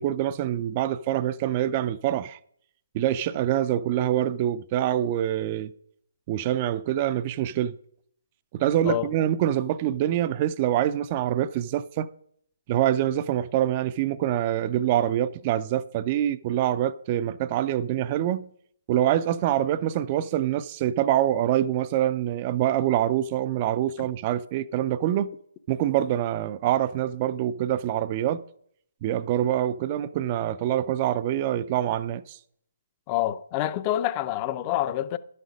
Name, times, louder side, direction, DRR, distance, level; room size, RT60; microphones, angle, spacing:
voice 1, 0.0-2.4 2.9-5.7 6.3-7.7 8.5-12.1 12.7-18.5 18.9-25.3 25.7-28.4 29.0-32.4, right 11 dB, 30° right, 0.4 m, -25 dB
voice 2, 33.1-35.2, left 13 dB, 25° left, 0.5 m, -27 dB
11.0 x 6.5 x 5.1 m
figure-of-eight pair, 140°, 0 cm